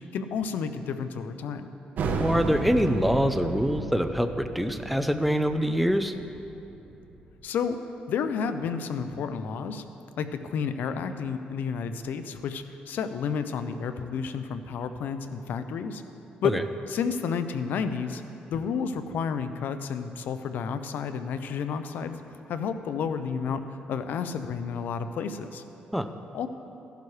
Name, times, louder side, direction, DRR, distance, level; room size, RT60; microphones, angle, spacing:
voice 1, 0.1-1.7 7.4-7.8 8.1-9.8 10.2-16.0 16.4-16.6 16.9-18.2 18.5-22.2 22.5-23.6 23.9-25.6 26.3-26.5, left 6 dB, 75° left, 10 dB, 0.6 m, -31 dB
sound 1, 2.0-7.3, right 3 dB, 65° right, 1.1 m, -33 dB
voice 2, 2.2-6.1 16.4-16.6 25.9-26.1, equal, ahead, 8 dB, 0.6 m, -25 dB
15.0 x 11.5 x 3.3 m, 2.9 s
cardioid pair, 95°, 3 cm